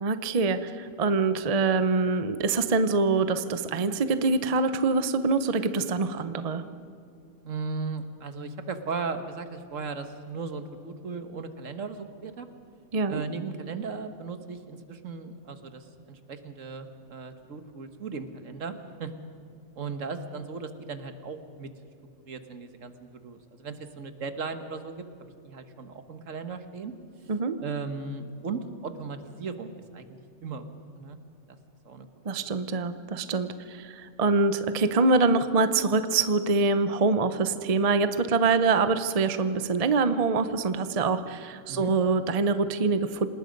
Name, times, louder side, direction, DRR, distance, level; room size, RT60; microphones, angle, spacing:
voice 1, 0.0-6.6 12.9-13.2 27.3-27.6 32.2-43.3, right 4 dB, 35° right, 11 dB, 0.7 m, -25 dB
voice 2, 7.4-12.5 13.1-18.7 19.0-19.1 19.7-21.7 22.3-25.1 25.4-26.9 27.6-31.2 31.5-31.6 31.8-32.1 41.7-41.9, right 4 dB, 70° right, 9 dB, 1.6 m, -37 dB
27.5 x 19.0 x 5.3 m, 2.5 s
omnidirectional pair, 1.4 m